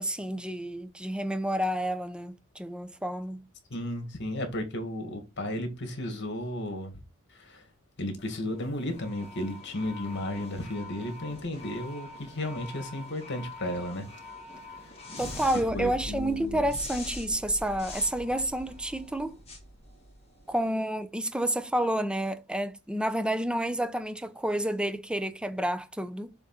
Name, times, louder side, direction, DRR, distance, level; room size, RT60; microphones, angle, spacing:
voice 1, 0.0-3.5 15.2-19.4 20.5-26.3, right 1 dB, 5° right, 0.6 m, -30 dB
voice 2, 3.7-6.9 7.3-7.6 8.0-14.1 14.7-14.9 15.7-16.6, left 1 dB, 55° left, 2.0 m, -34 dB
sound 1, 8.2-20.6, left 1 dB, 30° left, 2.2 m, -43 dB
7.0 x 3.7 x 4.2 m
head